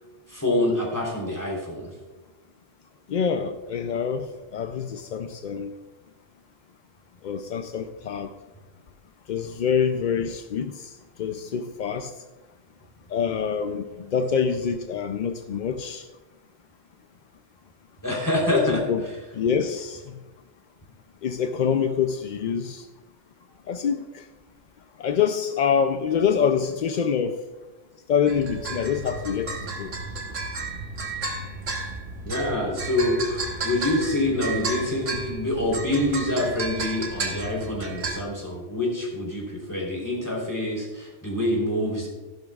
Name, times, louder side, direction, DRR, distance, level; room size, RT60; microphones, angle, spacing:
voice 1, 0.3-1.9 18.0-19.3 32.2-42.1, left 1 dB, 15° left, -3 dB, 3.5 m, -26 dB
voice 2, 3.1-5.7 7.2-8.3 9.3-10.9 11.2-12.1 13.1-16.1 18.5-19.0 19.3-20.2 21.2-22.9 23.7-24.3 25.0-27.4 28.1-29.9, left 7 dB, 65° left, 8 dB, 0.4 m, -26 dB
sound 1, 28.3-38.2, right 3 dB, 90° right, 1.7 m, -32 dB
14.5 x 11.5 x 2.4 m, 1.2 s
omnidirectional pair, 1.3 m